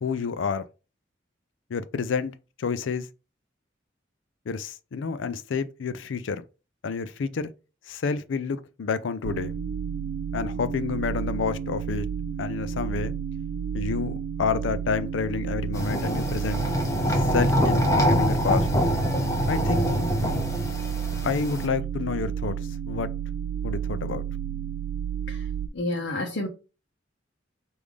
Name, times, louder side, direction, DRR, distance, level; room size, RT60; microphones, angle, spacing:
voice 1, 0.0-0.7 1.7-3.1 4.5-6.4 6.8-7.5 7.9-9.5 10.3-12.1 12.4-13.1 13.7-16.6 17.3-18.7 19.5-20.4 21.2-22.6 22.9-23.1 23.6-24.2, left 5 dB, 85° left, 0.4 m, -29 dB
sound 1, 9.2-25.7, right 8 dB, 60° right, 0.3 m, -31 dB
sound 2, 15.7-21.7, equal, 15° left, 0.7 m, -25 dB
voice 2, 25.7-26.5, left 1 dB, 70° left, 0.8 m, -29 dB
4.8 x 2.6 x 3.5 m
head